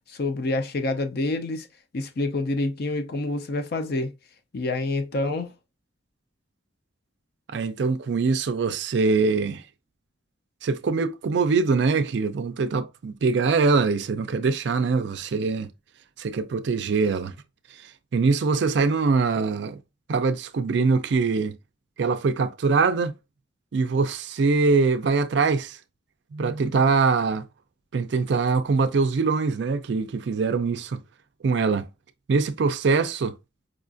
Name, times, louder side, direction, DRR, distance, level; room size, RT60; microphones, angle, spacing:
voice 1, 0.1-1.7 1.9-4.1 4.5-5.5, left 2 dB, 50° left, 0.5 m, -27 dB
voice 2, 7.5-9.6 10.6-15.7 16.2-17.3 17.8-19.8 20.1-21.6 22.0-23.1 23.7-25.8 26.3-27.5 27.9-31.0 31.4-31.9 32.3-33.4, right 4 dB, 60° right, 0.4 m, -23 dB
4.9 x 2.3 x 2.5 m
head